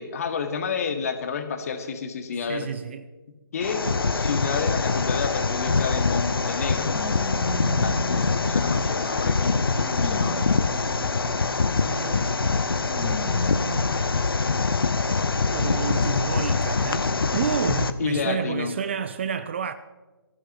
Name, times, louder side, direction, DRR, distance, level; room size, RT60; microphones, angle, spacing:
voice 1, 0.0-2.7 3.5-3.8 4.1-7.1 7.8-10.5 18.0-18.7, left 6 dB, 35° left, 1.8 m, -30 dB
voice 2, 2.4-3.1 11.9-12.4 15.5-19.8, right 7 dB, 30° right, 0.5 m, -30 dB
sound 1, 3.6-17.9, left 4 dB, 65° left, 1.0 m, -24 dB
sound 2, 6.9-8.9 9.5-11.5 12.7-14.1 14.8-14.9 16.1-16.2, right 1 dB, 15° left, 3.3 m, -36 dB
23.5 x 14.5 x 3.0 m
figure-of-eight pair, 145°, 13 cm